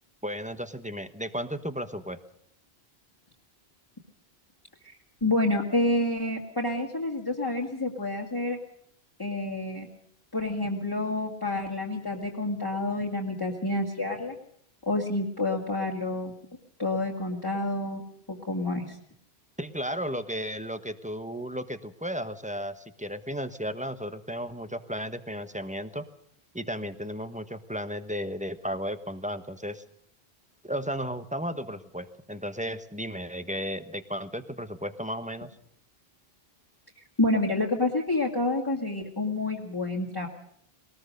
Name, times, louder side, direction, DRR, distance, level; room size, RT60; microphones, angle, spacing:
voice 1, 0.2-2.2 19.6-26.1 26.5-29.8 30.6-35.6, equal, 5° right, 10 dB, 1.1 m, -34 dB
voice 2, 5.2-8.6 9.2-9.9 10.3-14.4 14.8-16.3 16.8-18.0 18.3-19.0 37.2-40.3, left 2 dB, 20° left, -2 dB, 2.2 m, -28 dB
21.5 x 19.0 x 6.6 m, 0.69 s
omnidirectional pair, 1.1 m